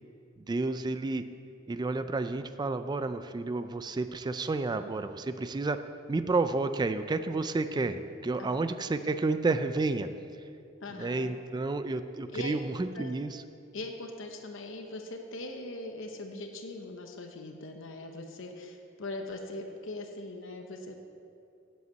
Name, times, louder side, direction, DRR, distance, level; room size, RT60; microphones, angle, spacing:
voice 1, 0.4-1.2 1.7-5.8 6.1-10.1 10.9-13.4, right 3 dB, 20° right, 10 dB, 0.3 m, -31 dB
voice 2, 10.8-11.3 12.3-12.6 12.9-13.1 13.7-21.0, left 2 dB, 70° left, 4 dB, 0.9 m, -41 dB
8.0 x 7.9 x 8.1 m, 2.6 s
head